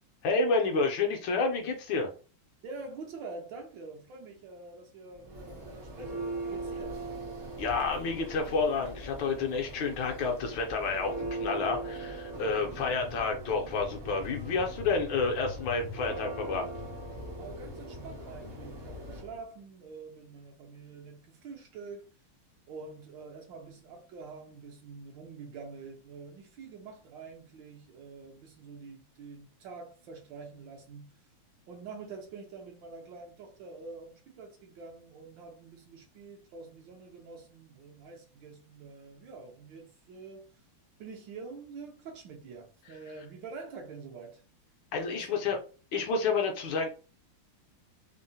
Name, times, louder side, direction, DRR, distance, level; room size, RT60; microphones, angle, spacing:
voice 1, 0.2-2.1 7.6-16.7 44.9-45.6 45.9-46.9, left 4 dB, 75° left, 1.2 m, -29 dB
voice 2, 2.6-7.0 17.4-22.1 22.7-31.2 31.7-40.6 41.0-44.4 45.1-45.3, right 4 dB, 70° right, 1.2 m, -46 dB
Church bell, 5.1-19.4, right 1 dB, 55° right, 0.5 m, -40 dB
3.6 x 2.0 x 2.6 m
omnidirectional pair, 2.3 m